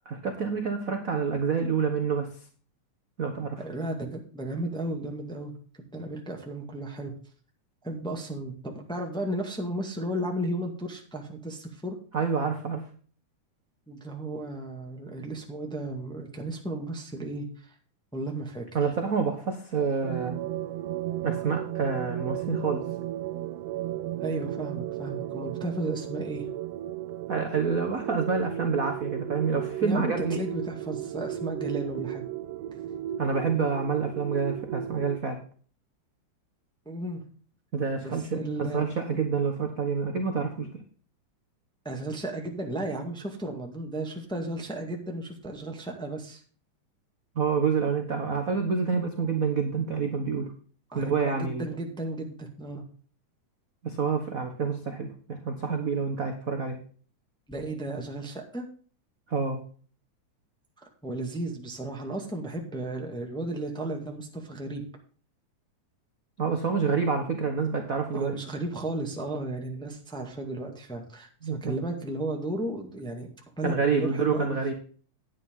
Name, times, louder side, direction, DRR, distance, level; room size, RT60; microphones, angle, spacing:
voice 1, 0.0-2.3 3.2-3.6 12.1-12.8 18.7-20.4 21.2-22.8 27.3-30.4 33.2-35.4 37.7-40.7 47.3-50.5 50.9-51.6 53.8-56.8 59.3-59.6 66.4-68.3 71.4-71.8 73.6-74.7, right 5 dB, 55° right, 4 dB, 0.9 m, -28 dB
voice 2, 3.6-5.5 5.9-7.1 7.8-12.0 13.9-17.7 18.1-18.6 24.2-26.5 29.8-32.2 36.8-37.2 38.0-38.8 41.8-46.4 50.9-52.8 57.5-58.6 60.8-64.8 67.6-67.7 68.1-73.3 73.6-74.7, right 1 dB, ahead, 2 dB, 1.1 m, -34 dB
sound 1, 20.0-35.2, right 13 dB, 80° right, 1.5 m, -34 dB
11.0 x 9.6 x 3.7 m, 0.42 s
omnidirectional pair, 3.4 m